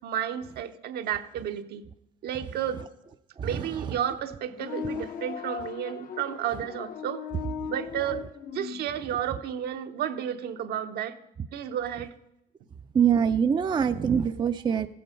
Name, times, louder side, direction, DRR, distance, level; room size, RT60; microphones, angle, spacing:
voice 1, 0.0-1.8 2.2-2.8 3.4-7.3 7.7-11.1 11.5-12.1, right 9 dB, 70° right, 7 dB, 0.9 m, -32 dB
voice 2, 3.4-3.8 12.9-14.9, right 7 dB, 25° right, 9 dB, 0.4 m, -24 dB
sound 1, 4.5-8.9, left 7 dB, 55° left, 0.8 m, -38 dB
15.0 x 7.8 x 5.1 m, 0.85 s
cardioid pair, 110°, 17 cm